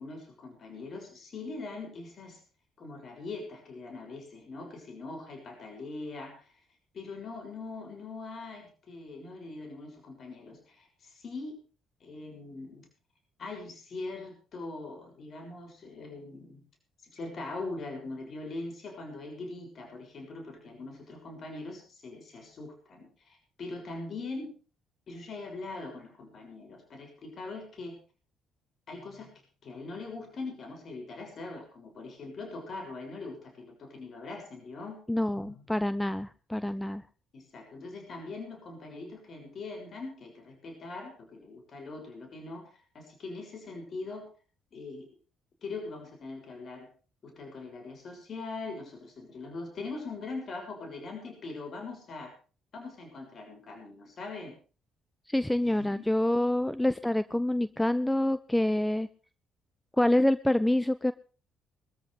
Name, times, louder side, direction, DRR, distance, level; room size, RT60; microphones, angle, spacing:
voice 1, 0.0-2.4 2.8-6.5 6.9-11.6 12.0-12.9 13.4-16.6 17.0-24.5 25.1-28.0 28.9-29.3 29.6-35.0 35.3-35.6 37.3-44.3 44.7-45.1 45.6-46.9 47.2-52.3 52.7-54.6 55.5-56.0, left 3 dB, 50° left, 3 dB, 6.7 m, -42 dB
voice 2, 35.1-37.0 55.3-59.1 60.0-61.1, left 1 dB, 10° left, 15 dB, 0.8 m, -27 dB
22.5 x 14.5 x 3.4 m, 0.37 s
hypercardioid pair, 50°, 0 cm